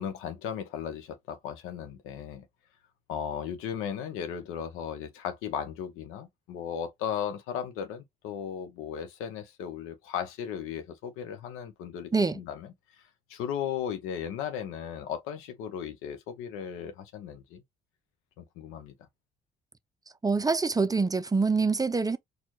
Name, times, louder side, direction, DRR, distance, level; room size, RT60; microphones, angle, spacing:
voice 1, 0.0-2.5 3.1-12.7 13.3-17.6 18.4-18.9, left 8 dB, 85° left, 0.8 m, -36 dB
voice 2, 20.2-22.2, right 4 dB, 20° right, 0.4 m, -25 dB
4.3 x 2.3 x 3.0 m
supercardioid pair, 60°, 21 cm